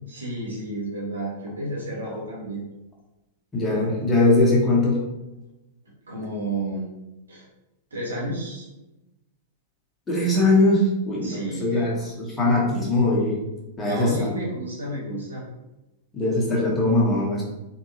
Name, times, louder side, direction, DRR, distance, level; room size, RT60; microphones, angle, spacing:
voice 1, 0.1-2.6 6.1-6.8 7.3-7.5 7.9-8.6 11.2-11.9 13.8-15.4, right 1 dB, 75° right, -5 dB, 1.5 m, -31 dB
voice 2, 3.5-5.0 10.1-13.4 13.8-14.3 16.1-17.4, left 2 dB, 15° left, -4 dB, 1.3 m, -21 dB
4.2 x 3.3 x 2.7 m, 0.98 s
figure-of-eight pair, 95°, 0 cm